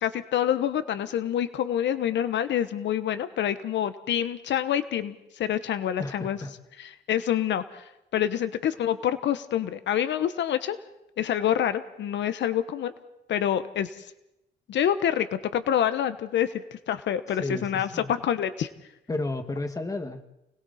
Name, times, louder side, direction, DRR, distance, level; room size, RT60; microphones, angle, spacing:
voice 1, 0.0-6.4 6.8-10.8 11.2-12.9 13.3-14.1 14.7-15.3 15.5-18.7, left 10 dB, 80° left, 12 dB, 1.1 m, -27 dB
voice 2, 6.0-6.5 17.3-18.1 19.1-20.2, left 2 dB, 20° left, 7 dB, 1.9 m, -32 dB
29.5 x 20.5 x 4.3 m, 0.87 s
cardioid pair, 130°, 18 cm